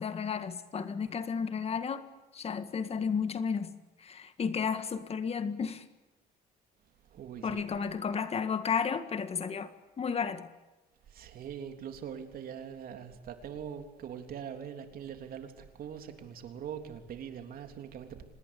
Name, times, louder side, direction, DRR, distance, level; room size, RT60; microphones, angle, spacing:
voice 1, 0.0-2.0 2.3-5.9 7.4-10.5, left 6 dB, 35° left, 11 dB, 1.8 m, -33 dB
voice 2, 7.1-7.6 11.1-18.2, right 8 dB, 60° right, 6 dB, 3.4 m, -42 dB
26.0 x 19.5 x 8.5 m, 1.1 s
cardioid pair, 110°, 17 cm